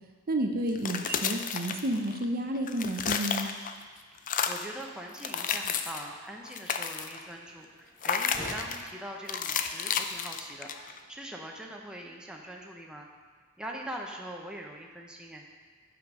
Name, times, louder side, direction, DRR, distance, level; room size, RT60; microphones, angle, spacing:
voice 1, 0.3-3.5, right 1 dB, 45° right, 4 dB, 0.7 m, -30 dB
sound 1, 0.7-2.2 2.5-3.8 4.2-4.7 5.1-6.1 6.4-7.2 8.0-8.8 9.3-11.0, left 7 dB, 40° left, 0.4 m, -32 dB
voice 2, 4.5-13.1 13.6-15.5, right 1 dB, 5° right, -1 dB, 0.7 m, -42 dB
sound 2, 6.1-11.1, equal, 20° left, 2.8 m, -48 dB
8.7 x 5.1 x 6.2 m, 1.5 s
head